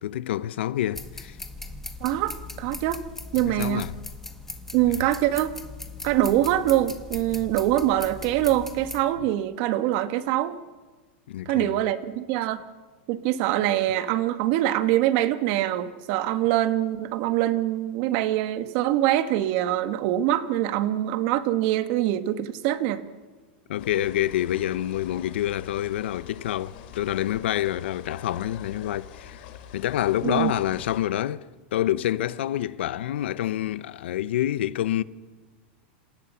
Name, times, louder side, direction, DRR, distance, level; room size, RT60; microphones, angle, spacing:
voice 1, 0.0-1.4 3.4-3.9 11.3-11.8 23.7-29.4 29.7-35.0, left 12 dB, 80° left, 0.9 m, -27 dB
sound 1, 0.9-9.0, left 3 dB, 5° left, 1.7 m, -39 dB
voice 2, 2.0-3.0 3.3-3.9 4.7-5.5 6.0-10.6 11.4-12.6 13.1-23.0 30.2-30.5, right 13 dB, 50° right, 1.7 m, -24 dB
sound 2, 23.8-31.0, left 9 dB, 60° left, 4.3 m, -45 dB
27.5 x 27.5 x 5.8 m
supercardioid pair, 150°, 6 cm